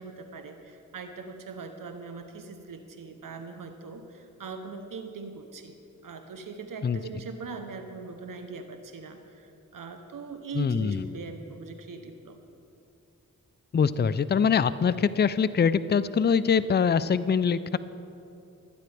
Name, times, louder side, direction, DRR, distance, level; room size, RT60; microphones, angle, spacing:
voice 1, 0.0-5.8 6.0-12.4, right 4 dB, 75° right, 7 dB, 0.9 m, -41 dB
voice 2, 10.5-11.1 13.7-17.8, left 6 dB, 30° left, 15 dB, 0.4 m, -23 dB
21.0 x 9.3 x 3.4 m, 2.7 s
cardioid pair, 40°, 33 cm